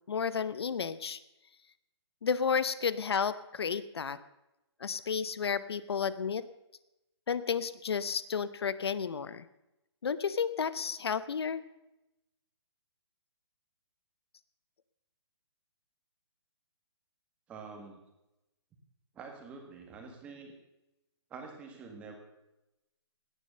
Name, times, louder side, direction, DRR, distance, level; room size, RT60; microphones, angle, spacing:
voice 1, 0.1-1.2 2.2-4.2 4.8-6.4 7.3-9.4 10.0-11.6, left 6 dB, 65° left, 15 dB, 0.9 m, -32 dB
voice 2, 17.5-18.0 19.1-20.5 21.3-22.2, right 4 dB, 10° right, 3 dB, 1.6 m, -46 dB
17.5 x 10.0 x 6.5 m, 0.93 s
hypercardioid pair, 175°, 14 cm